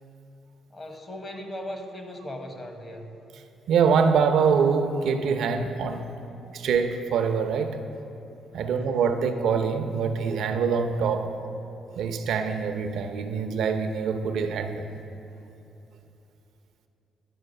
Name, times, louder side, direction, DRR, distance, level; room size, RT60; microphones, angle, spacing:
voice 1, 0.7-3.2 6.1-6.2 8.6-8.9, left 1 dB, 35° left, 4 dB, 1.1 m, -38 dB
voice 2, 3.7-6.1 6.5-7.8 8.5-11.4 12.0-15.0, right 6 dB, 75° right, 7 dB, 0.6 m, -24 dB
10.0 x 4.6 x 6.7 m, 2.9 s
cardioid pair, 90°, 0 cm